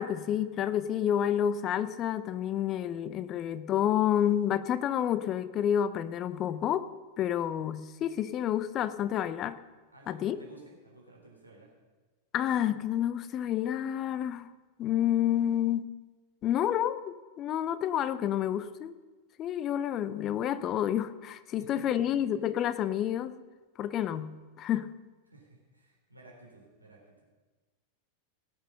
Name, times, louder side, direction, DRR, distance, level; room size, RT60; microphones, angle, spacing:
voice 1, 0.0-6.9 7.2-9.6 10.1-10.4 12.3-14.5 14.8-15.9 16.4-18.9 19.4-23.4 23.8-24.9, left 10 dB, 30° left, 15 dB, 0.6 m, -29 dB
voice 2, 9.9-11.7 21.6-21.7 25.3-27.2, right 2 dB, 85° right, -2 dB, 3.5 m, -54 dB
18.0 x 7.0 x 6.6 m, 1.3 s
figure-of-eight pair, 90°, 0 cm